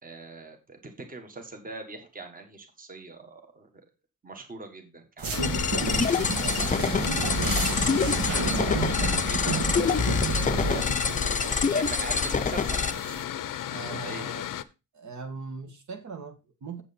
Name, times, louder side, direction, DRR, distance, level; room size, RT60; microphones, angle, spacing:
voice 1, 0.0-3.7 4.2-5.5 7.3-7.4 8.3-10.6 11.7-13.2 13.9-14.4, right 3 dB, 25° right, 5 dB, 1.5 m, -42 dB
sound 1, 5.2-13.2, right 3 dB, 85° right, 2.9 m, -31 dB
Mechanical fan, 5.3-14.6, left 11 dB, 70° left, 0.7 m, -33 dB
sound 2, 5.4-12.9, left 5 dB, 25° left, 0.6 m, -27 dB
voice 2, 6.3-7.4 13.7-14.5 14.9-16.8, right 4 dB, 55° right, 5 dB, 1.6 m, -40 dB
7.8 x 7.6 x 4.2 m, 0.28 s
wide cardioid pair, 140°, 34 cm